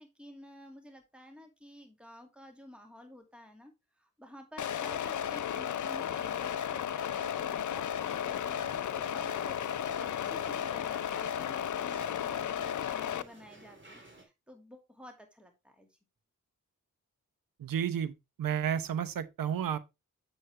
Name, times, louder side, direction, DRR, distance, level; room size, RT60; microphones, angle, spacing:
voice 1, 0.0-16.0, equal, 5° right, 2.2 m, -52 dB
Digi Choir, 4.6-13.2, left 9 dB, 65° left, 0.6 m, -34 dB
sound 1, 8.1-14.2, right 2 dB, 35° right, 2.8 m, -53 dB
voice 2, 17.6-18.1 18.4-19.8, right 8 dB, 85° right, 0.8 m, -31 dB
7.8 x 6.4 x 3.3 m
cardioid pair, 55°, 33 cm